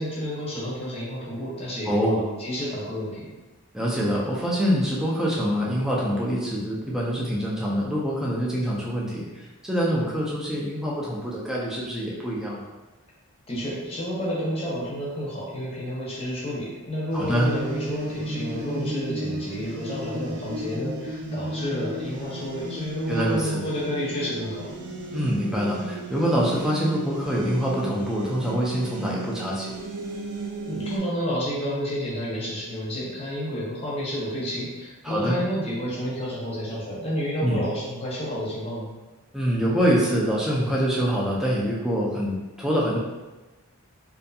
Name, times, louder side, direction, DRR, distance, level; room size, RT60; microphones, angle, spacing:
voice 1, 0.0-3.3 13.5-24.7 30.7-38.9, equal, 25° left, -7 dB, 0.7 m, -30 dB
voice 2, 1.9-2.2 3.7-12.6 17.1-17.5 23.1-23.6 25.1-29.8 35.0-35.4 37.4-37.6 39.3-43.0, equal, ahead, -5 dB, 0.4 m, -25 dB
sound 1, 17.1-31.0, right 1 dB, 85° right, 0.6 m, -34 dB
2.6 x 2.5 x 2.3 m, 1.2 s
head